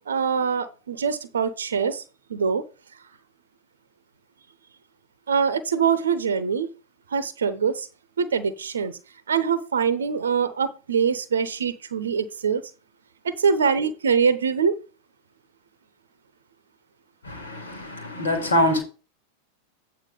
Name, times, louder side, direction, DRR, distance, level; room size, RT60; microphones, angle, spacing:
voice 1, 0.1-2.0 2.3-2.6 5.3-6.7 7.1-7.9 8.2-8.9 9.3-12.6 13.2-14.8, right 6 dB, 65° right, 0.7 m, -23 dB
voice 2, 17.3-18.8, left 1 dB, 70° left, 2.9 m, -24 dB
9.0 x 4.6 x 5.0 m
figure-of-eight pair, 90°, 0 cm